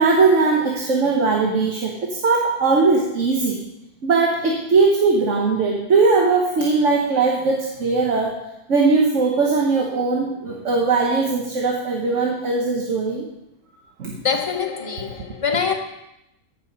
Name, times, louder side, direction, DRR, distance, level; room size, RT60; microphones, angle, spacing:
voice 1, 0.0-3.6 4.0-8.4 8.7-13.2 14.0-14.2, right 4 dB, 55° right, 1.5 m, -19 dB
voice 2, 14.2-15.7, left 6 dB, 25° left, 1.2 m, -24 dB
15.0 x 5.9 x 5.5 m
omnidirectional pair, 1.6 m